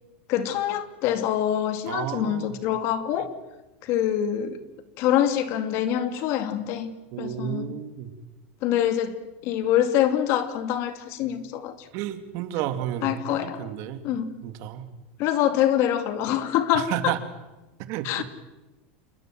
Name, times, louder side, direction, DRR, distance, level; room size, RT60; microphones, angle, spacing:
voice 1, 0.3-3.3 3.8-4.6 5.0-7.7 8.6-11.9 13.0-13.7 14.0-14.4 15.2-17.1 18.0-18.2, left 10 dB, 50° left, 2.3 m, -25 dB
voice 2, 1.9-2.6 7.1-8.1 11.9-14.0 14.4-14.9 16.7-17.2 17.9-18.2, right 11 dB, 55° right, 2.5 m, -31 dB
28.5 x 20.5 x 7.8 m
supercardioid pair, 145°, 6 cm